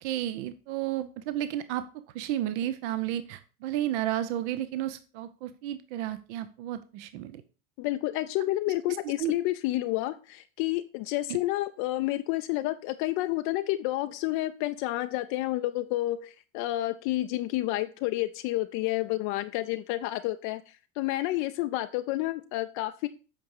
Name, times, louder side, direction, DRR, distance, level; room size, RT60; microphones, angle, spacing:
voice 1, 0.0-7.4 8.9-9.3, right 12 dB, 55° right, 12 dB, 0.8 m, -32 dB
voice 2, 7.8-23.1, left 16 dB, 45° left, 9 dB, 0.5 m, -30 dB
8.5 x 5.3 x 4.8 m, 0.36 s
figure-of-eight pair, 75°, 41 cm